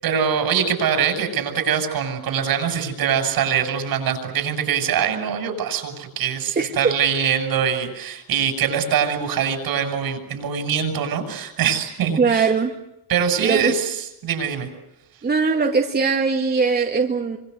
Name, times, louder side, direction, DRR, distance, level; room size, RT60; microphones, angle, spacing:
voice 1, 0.0-12.5 13.1-13.9 14.2-14.7, right 8 dB, 80° right, 6 dB, 7.0 m, -23 dB
voice 2, 6.6-6.9 12.2-12.8 13.4-13.7 15.2-17.4, right 5 dB, 25° right, 2 dB, 2.1 m, -20 dB
27.0 x 25.5 x 8.0 m, 0.85 s
cardioid pair, 150°, 35 cm